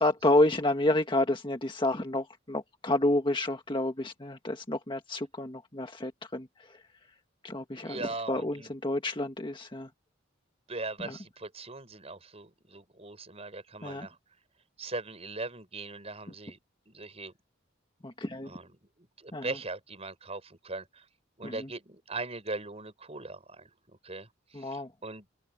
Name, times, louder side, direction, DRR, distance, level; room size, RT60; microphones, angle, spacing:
voice 1, 0.0-6.5 7.4-8.0 8.3-9.9 11.0-11.2 13.8-14.1 18.0-18.5 19.3-19.5 21.4-21.7 24.5-24.9, left 1 dB, 25° left, 1.7 m, -29 dB
voice 2, 7.7-8.7 10.7-14.2 14.8-16.6 16.9-17.3 18.4-21.1 21.4-25.3, right 3 dB, 35° right, 5.9 m, -40 dB
open air
head